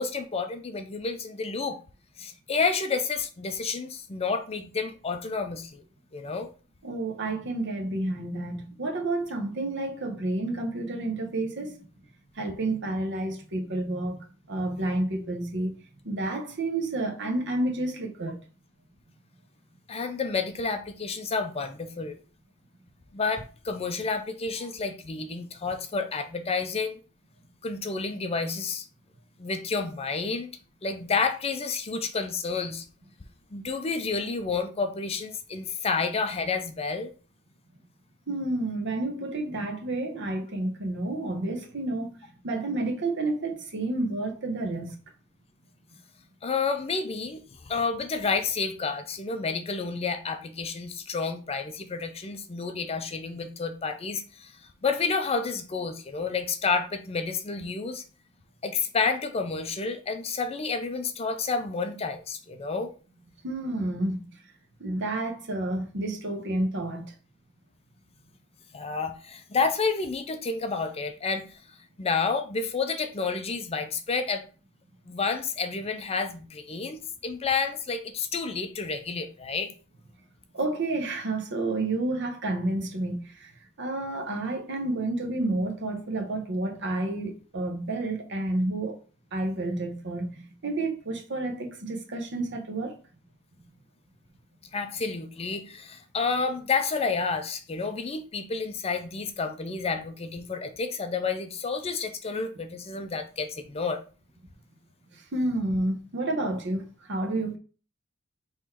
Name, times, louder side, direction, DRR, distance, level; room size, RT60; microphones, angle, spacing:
voice 1, 0.0-1.8 2.2-5.8 6.1-6.5 19.9-22.2 23.1-27.0 27.6-28.9 29.4-30.5 30.8-32.8 33.5-37.1 46.4-54.5 54.8-58.0 58.6-62.9 68.7-71.4 72.0-74.4 75.1-79.7 94.7-104.0, left 4 dB, 30° left, 0.5 m, -30 dB
voice 2, 6.8-11.8 12.3-15.7 16.0-18.4 38.3-42.1 42.4-45.0 63.4-64.3 64.8-67.1 80.5-83.5 83.8-89.0 89.3-93.0 105.1-107.6, right 2 dB, 60° right, 1.0 m, -30 dB
3.8 x 3.0 x 4.4 m
head